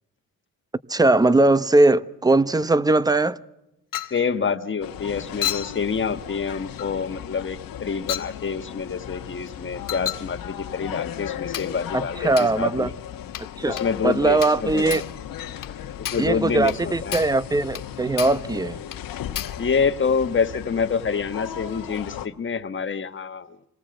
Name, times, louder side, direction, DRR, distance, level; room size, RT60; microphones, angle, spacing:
voice 1, 0.9-3.4 11.9-12.9 13.6-15.0 16.2-18.8, right 2 dB, 10° right, 0.8 m, -20 dB
Chink clink, 3.9-4.2 5.4-5.8 6.8-6.9 8.1-8.3 9.9-10.3 11.5-11.8 12.4-12.6 13.3-13.5 13.8-13.9 14.4-14.6 14.9-15.1 15.6-15.7 16.0-16.3 16.7-16.8 17.1-17.4 17.7-17.9 18.2-18.5 18.9-19.0 19.3-19.6, left 11 dB, 75° left, 1.8 m, -31 dB
voice 2, 4.1-12.9 13.7-15.0 15.6-15.7 16.1-17.2 19.6-23.6, left 5 dB, 35° left, 1.4 m, -27 dB
sound 1, 4.8-22.3, left 10 dB, 90° left, 1.4 m, -36 dB
26.5 x 19.5 x 7.8 m
cardioid pair, 95°, 33 cm